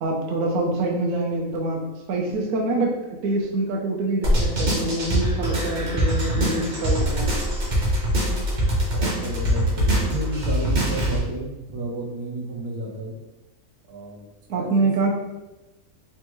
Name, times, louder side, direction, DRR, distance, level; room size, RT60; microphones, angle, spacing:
voice 1, 0.0-1.8 2.1-2.9 3.2-7.3 14.5-15.1, right 2 dB, 70° right, -1 dB, 1.0 m, -25 dB
sound 1, 4.2-11.2, equal, 45° right, 0.6 m, -23 dB
voice 2, 8.8-13.2 13.9-14.3 14.5-15.1, right 2 dB, 90° right, -1 dB, 1.2 m, -32 dB
3.4 x 2.2 x 2.9 m, 1.0 s
omnidirectional pair, 1.6 m